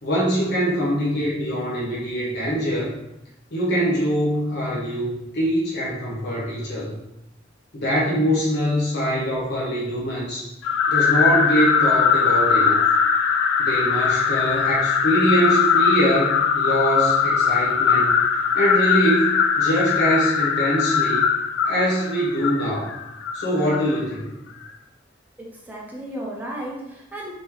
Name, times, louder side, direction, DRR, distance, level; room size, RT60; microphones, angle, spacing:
voice 1, 0.0-2.9 3.5-7.0 7.7-10.5 10.9-12.8 13.6-18.2 18.5-21.3 21.6-22.9 23.3-24.3, equal, 60° left, -6 dB, 0.9 m, -23 dB
sound 1, 10.6-24.0, left 6 dB, 90° left, 0.3 m, -20 dB
voice 2, 25.4-27.3, right 1 dB, 10° right, -3 dB, 0.7 m, -34 dB
3.1 x 2.2 x 3.5 m, 0.88 s
head